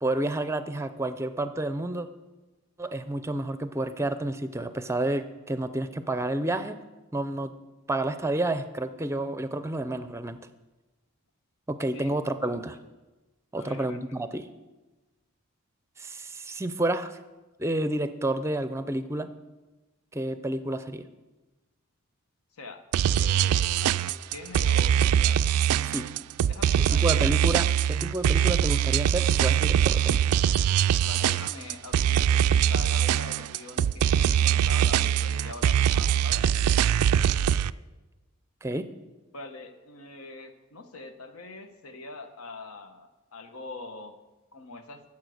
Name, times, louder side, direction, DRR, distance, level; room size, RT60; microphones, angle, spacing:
voice 1, 0.0-2.1 2.8-6.8 7.1-7.5 7.9-10.4 11.7-12.8 13.5-14.5 16.0-17.2 17.6-19.3 20.1-21.1 25.8-26.1 26.9-30.2 38.6-38.9, right 1 dB, 10° right, 11 dB, 0.5 m, -30 dB
voice 2, 13.5-14.0 22.5-22.8 23.1-25.4 25.7-26.0 26.5-27.4 31.0-36.5 39.3-44.2 44.5-45.0, left 3 dB, 80° left, 7 dB, 1.2 m, -43 dB
sound 1, 22.9-37.7, right 9 dB, 90° right, 0.3 m, -23 dB
14.5 x 7.2 x 6.3 m, 1.1 s
head